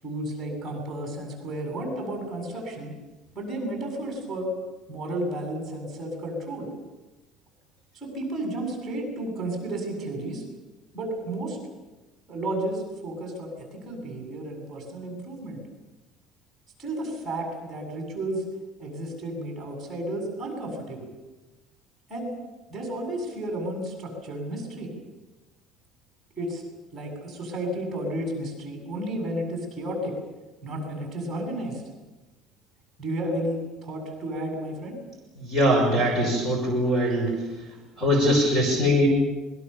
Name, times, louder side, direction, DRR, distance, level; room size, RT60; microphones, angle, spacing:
voice 1, 0.0-2.9 3.3-4.5 4.9-6.7 7.9-10.4 10.9-11.6 12.3-15.6 16.8-18.4 18.8-21.1 22.1-22.3 22.7-24.9 26.4-26.6 26.9-30.1 30.6-31.8 33.0-34.9, right 1 dB, 10° right, 1 dB, 7.5 m, -32 dB
voice 2, 35.4-37.3 38.0-39.1, equal, 15° left, 1 dB, 5.8 m, -22 dB
26.0 x 22.0 x 7.0 m, 1.1 s
cardioid pair, 170°, 0 cm